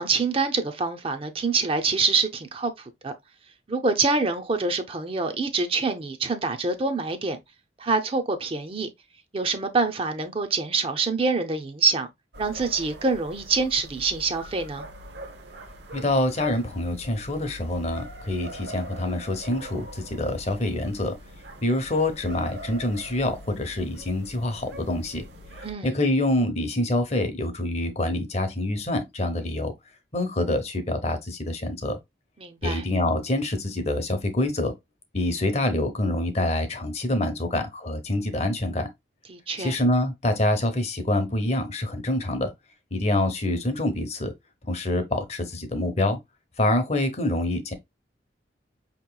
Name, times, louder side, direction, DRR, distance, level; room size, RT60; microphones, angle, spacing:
voice 1, 0.0-3.1 3.7-7.4 7.8-8.9 9.3-12.1 12.4-14.9 25.6-25.9 32.4-32.8 39.3-39.8, right 4 dB, 30° right, 0.5 m, -26 dB
sound 1, 12.3-25.7, right 1 dB, 70° right, 0.8 m, -43 dB
voice 2, 15.9-21.1 21.6-25.2 25.8-29.7 30.1-32.0 32.6-34.7 35.1-38.9 39.6-42.5 42.9-44.3 44.6-46.2 46.6-47.7, left 1 dB, 35° left, 0.8 m, -26 dB
5.2 x 2.9 x 2.2 m
head